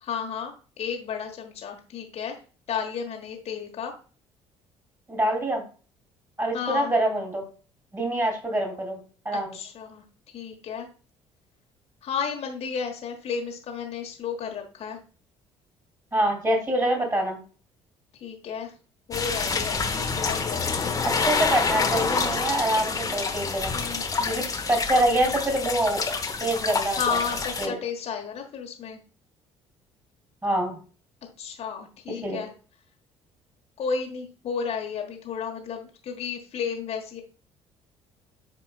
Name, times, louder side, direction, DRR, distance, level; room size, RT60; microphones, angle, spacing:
voice 1, 0.0-2.4 2.7-3.9 6.5-6.9 9.3-10.0 10.3-10.9 12.0-15.0 18.2-18.7 19.1-21.7 23.7-24.4 26.9-29.0 31.4-32.5 33.8-37.2, left 6 dB, 45° left, 2 dB, 1.3 m, -33 dB
voice 2, 5.1-5.6 6.4-7.4 7.9-9.5 16.1-17.4 21.3-23.8 24.2-26.0 26.4-27.2 27.6-27.7 30.4-30.8 32.2-32.4, right 1 dB, 20° right, 2 dB, 3.0 m, -25 dB
sound 1, 19.1-27.7, left 4 dB, 25° left, 1.0 m, -27 dB
10.0 x 4.4 x 2.3 m, 0.37 s
figure-of-eight pair, 50°, 15 cm